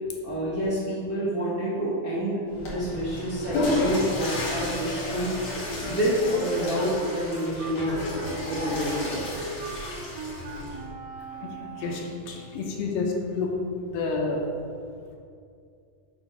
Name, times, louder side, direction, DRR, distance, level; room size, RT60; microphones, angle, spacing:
voice 1, 0.2-5.3 5.8-8.0 8.4-9.4, equal, 45° right, -9 dB, 1.2 m, -28 dB
Water / Toilet flush, 2.5-10.9, left 2 dB, 45° left, 2.1 m, -32 dB
Wind instrument woodwind instrument, 6.2-12.2, right 2 dB, 80° right, 1.3 m, -39 dB
voice 2, 11.8-13.5 13.9-14.4, left 4 dB, 80° left, 0 dB, 2.6 m, -29 dB
8.5 x 3.6 x 6.1 m, 2.4 s
omnidirectional pair, 4.0 m